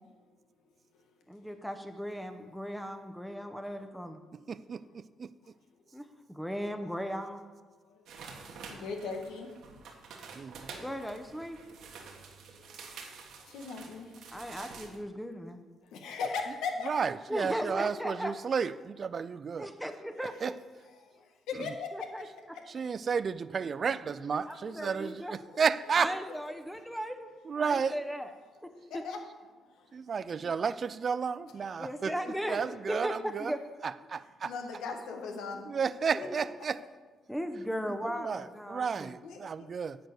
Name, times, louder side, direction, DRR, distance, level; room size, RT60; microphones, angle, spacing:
voice 1, 1.3-4.2 5.9-7.6 10.8-11.6 14.3-15.6 17.3-18.3 19.6-20.5 21.9-22.3 24.4-25.3 26.0-27.3 27.6-28.3 28.6-28.7 30.4-30.5 31.8-32.6 32.9-33.6 36.1-36.4 37.3-39.2, equal, ahead, 0.8 m, -37 dB
voice 2, 4.5-5.3 10.4-10.7 16.8-19.7 20.2-20.5 21.6-21.7 22.7-26.1 27.5-28.0 29.9-32.1 32.5-33.5 33.8-34.5 35.7-36.8 38.0-40.0, right 6 dB, 45° right, 0.3 m, -32 dB
sound 1, 8.1-15.0, right 5 dB, 80° right, 1.4 m, -48 dB
voice 3, 8.7-9.5 12.6-14.1 15.9-16.9 21.0-21.9 24.8-25.1 25.5-25.6 28.9-29.2 29.8-29.9 30.4-30.5 31.6-31.8 32.1-32.3 32.7-32.8 34.4-35.6 36.2-36.3 36.8-36.9 39.2-39.7, left 5 dB, 85° left, 1.3 m, -39 dB
10.0 x 4.5 x 7.8 m
cardioid pair, 90°, 0 cm